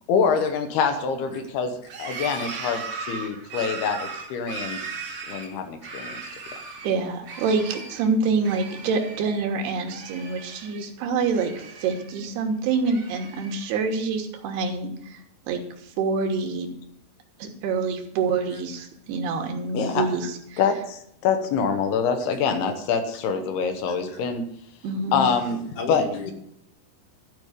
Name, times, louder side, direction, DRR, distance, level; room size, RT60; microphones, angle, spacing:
voice 1, 0.1-1.7 2.0-4.9 5.3-6.2 19.7-20.1 20.6-24.4 25.1-26.0, left 6 dB, 75° left, 7 dB, 3.0 m, -25 dB
sound 1, 1.9-6.9 7.2-8.1 8.4-9.4 9.6-10.8 11.3-12.2 12.7-13.7, right 4 dB, 55° right, 1.6 m, -37 dB
voice 2, 6.8-16.7 17.4-20.6 24.8-25.3, right 4 dB, 75° right, 4 dB, 3.2 m, -26 dB
voice 3, 25.8-26.3, left 4 dB, 55° left, 2 dB, 2.7 m, -33 dB
13.0 x 5.3 x 8.4 m, 0.72 s
omnidirectional pair, 4.8 m